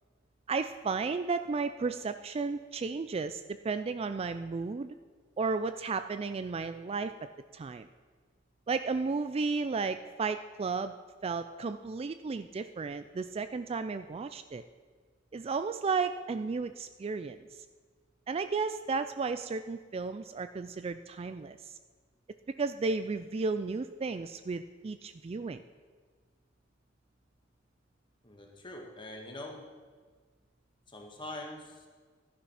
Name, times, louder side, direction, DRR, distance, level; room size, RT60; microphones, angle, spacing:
voice 1, 0.5-4.9 5.4-7.1 7.5-7.9 8.7-10.9 11.2-14.6 15.3-17.4 18.3-21.8 22.6-25.6, right 4 dB, 30° right, 10 dB, 0.3 m, -33 dB
voice 2, 28.2-29.7 30.9-31.9, left 1 dB, 25° left, 1 dB, 1.8 m, -44 dB
13.0 x 10.0 x 5.7 m, 1.5 s
head